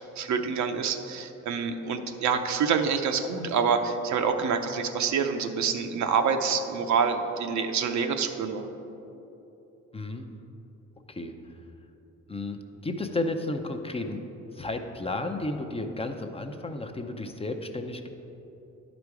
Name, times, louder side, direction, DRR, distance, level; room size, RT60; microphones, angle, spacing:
voice 1, 0.2-8.6, right 6 dB, 70° right, 6 dB, 0.7 m, -27 dB
voice 2, 9.9-10.3 11.1-11.6 12.3-14.2 14.5-18.1, left 2 dB, 20° left, 5 dB, 0.6 m, -33 dB
11.0 x 5.1 x 4.7 m, 3.0 s
cardioid pair, 90°, 30 cm